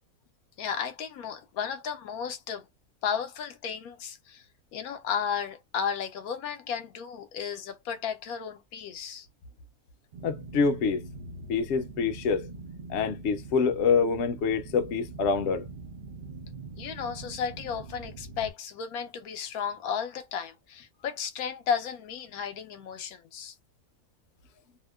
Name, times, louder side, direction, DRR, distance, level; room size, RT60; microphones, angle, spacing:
voice 1, 0.6-2.7 3.0-4.4 4.7-9.3 16.8-23.5, left 7 dB, 85° left, 1.1 m, -34 dB
sound 1, 10.1-18.5, right 3 dB, 70° right, 0.5 m, -43 dB
voice 2, 10.2-11.0 11.5-12.5 12.9-15.7, left 5 dB, 60° left, 0.8 m, -26 dB
2.7 x 2.1 x 2.2 m
omnidirectional pair, 1.5 m